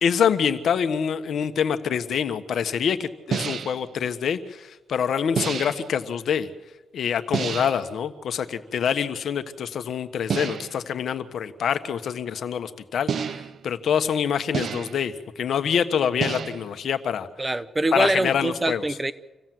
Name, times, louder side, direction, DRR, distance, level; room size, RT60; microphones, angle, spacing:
voice 1, 0.0-6.5 6.9-13.4 13.6-17.3 17.9-18.8, left 7 dB, 70° left, 1.4 m, -25 dB
sound 1, 3.3-3.9 5.4-5.9 7.3-7.9 10.3-10.9 13.1-13.7 14.5-15.1 16.2-16.8, right 7 dB, 60° right, 0.9 m, -29 dB
voice 2, 17.4-19.1, right 2 dB, 20° right, 1.0 m, -24 dB
27.0 x 16.5 x 7.8 m
cardioid pair, 90°, 0 cm